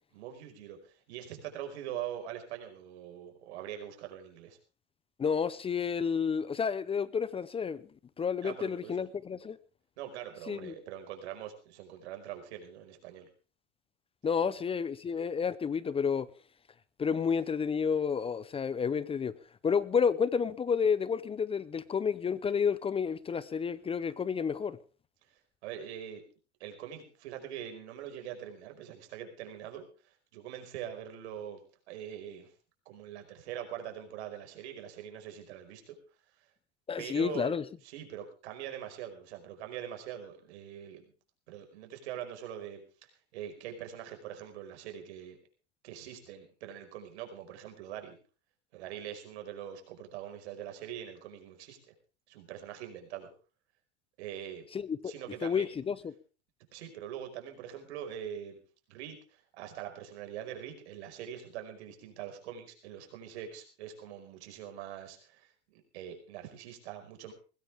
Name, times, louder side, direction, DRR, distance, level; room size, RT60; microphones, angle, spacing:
voice 1, 0.1-4.6 8.4-9.0 10.0-13.3 14.4-14.5 25.6-26.2 26.6-29.9 30.3-31.6 31.9-32.5 32.8-36.0 37.0-37.6 37.8-41.0 41.5-42.8 43.3-45.4 45.8-48.2 48.7-51.9 52.3-53.3 54.2-54.6 55.0-55.7 56.7-58.6 58.9-67.3, right 10 dB, 65° right, 5.1 m, -43 dB
voice 2, 5.2-7.8 8.2-9.6 10.5-10.8 14.2-16.3 17.0-19.3 19.6-24.8 36.9-37.6 54.7-55.1 55.4-56.1, left 6 dB, 15° left, 0.7 m, -30 dB
20.5 x 15.5 x 3.5 m
hypercardioid pair, 110°, 35 cm